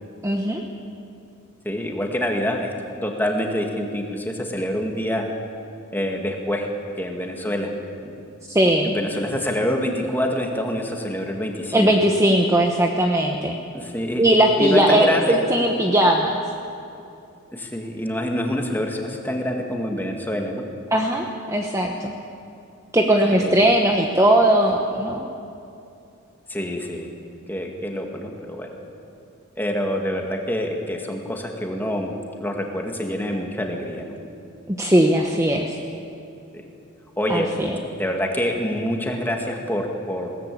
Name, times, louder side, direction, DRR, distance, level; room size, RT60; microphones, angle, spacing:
voice 1, 0.2-0.6 8.5-8.9 11.7-13.6 14.2-16.4 20.9-22.1 22.9-25.3 34.7-35.8 37.3-37.7, right 1 dB, 15° right, 2 dB, 1.0 m, -19 dB
voice 2, 1.6-2.7 3.0-5.3 5.9-6.7 7.0-7.7 8.0-8.1 8.8-11.9 13.7-14.3 14.6-15.4 17.5-20.6 23.3-23.5 26.5-27.1 27.5-28.7 29.6-32.1 32.4-34.2 37.2-37.5 38.0-40.4, equal, 10° left, 1 dB, 2.2 m, -26 dB
21.0 x 18.0 x 8.6 m, 2.7 s
head